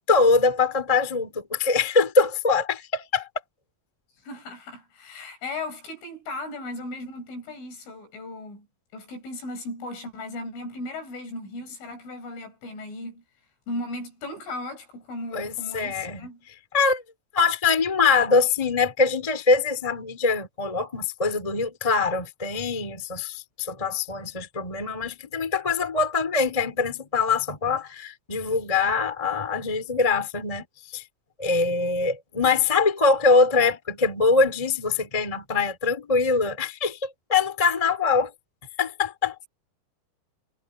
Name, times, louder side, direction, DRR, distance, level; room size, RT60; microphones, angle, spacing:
voice 1, 0.1-3.3 15.3-16.3 16.7-17.0 17.3-30.6 30.9-31.0 31.4-38.3 38.8-39.4, left 4 dB, 15° left, 1.4 m, -23 dB
voice 2, 4.2-8.7 8.9-13.2 13.7-16.4, left 2 dB, 75° left, 9.8 m, -36 dB
omnidirectional pair, 5.7 m